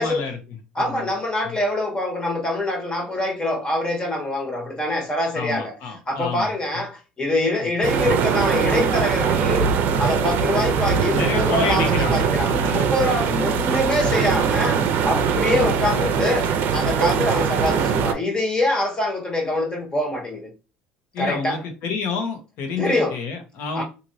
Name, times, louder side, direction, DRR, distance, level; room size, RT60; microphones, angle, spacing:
voice 1, 0.0-1.1 1.4-1.6 5.3-6.5 7.6-7.7 11.1-12.9 13.3-13.5 15.5-15.7 17.1-17.3 21.1-23.8, left 5 dB, 65° left, 1.0 m, -29 dB
voice 2, 0.7-5.8 6.1-20.5 21.2-21.6 22.8-23.2 23.7-23.8, left 1 dB, 20° left, 1.3 m, -24 dB
sound 1, 7.8-18.1, right 6 dB, 60° right, 0.5 m, -21 dB
3.0 x 2.6 x 2.6 m
supercardioid pair, 110°, 4 cm